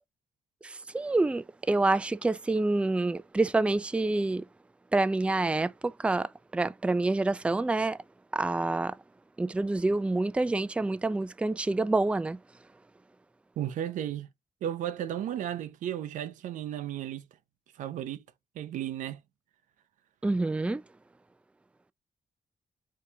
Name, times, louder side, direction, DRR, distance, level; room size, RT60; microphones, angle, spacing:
voice 1, 0.6-4.4 4.9-6.3 6.5-8.0 8.3-8.9 9.4-12.4 20.2-20.8, right 2 dB, 10° right, 0.3 m, -27 dB
voice 2, 13.6-14.3 14.6-17.2 17.8-18.2 18.5-19.2, right 11 dB, 90° right, 0.6 m, -34 dB
4.6 x 3.4 x 2.7 m
cardioid pair, 70°, 13 cm